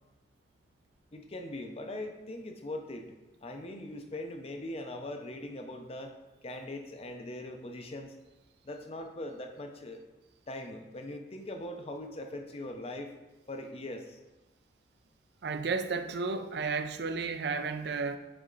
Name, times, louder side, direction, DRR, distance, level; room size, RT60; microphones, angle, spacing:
voice 1, 1.1-6.1 6.4-8.1 8.6-10.0 10.5-13.1 13.5-14.2, left 1 dB, 30° left, 0.6 m, -41 dB
voice 2, 15.4-18.2, right 4 dB, 60° right, 0.4 m, -32 dB
6.8 x 4.2 x 3.8 m
head